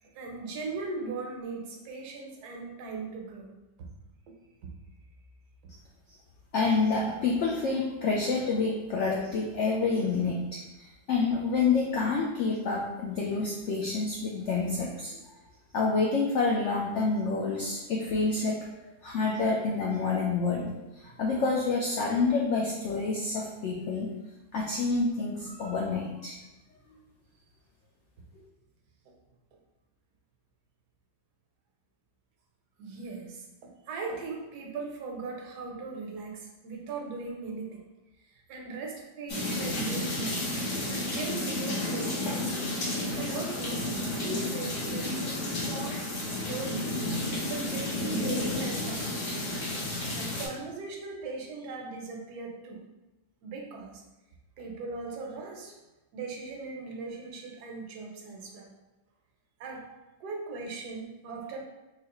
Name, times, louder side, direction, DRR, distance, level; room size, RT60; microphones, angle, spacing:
voice 1, 0.0-3.5 4.3-4.4 4.6-4.7 32.8-33.5 33.9-37.8 38.3-40.4 40.9-42.5 43.1-43.9 44.2-46.9 47.3-49.5 50.1-52.8 53.4-54.0 54.6-55.8 56.1-58.7 59.6-59.9 60.2-61.6, right 3 dB, 80° right, 1 dB, 1.3 m, -39 dB
voice 2, 6.5-15.1 15.7-18.6 19.0-24.1 24.5-26.3, left 4 dB, 75° left, -3 dB, 0.6 m, -28 dB
sound 1, 39.3-50.5, left 1 dB, 55° left, 1.1 m, -32 dB
3.9 x 2.7 x 2.9 m, 1.0 s
omnidirectional pair, 1.7 m